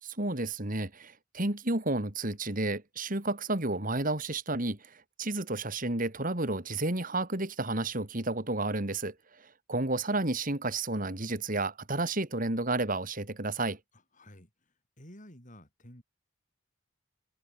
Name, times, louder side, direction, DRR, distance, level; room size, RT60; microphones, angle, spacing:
voice 1, 0.0-13.8, right 2 dB, 40° right, 2.9 m, -31 dB
voice 2, 13.9-16.0, left 1 dB, 40° left, 7.1 m, -53 dB
head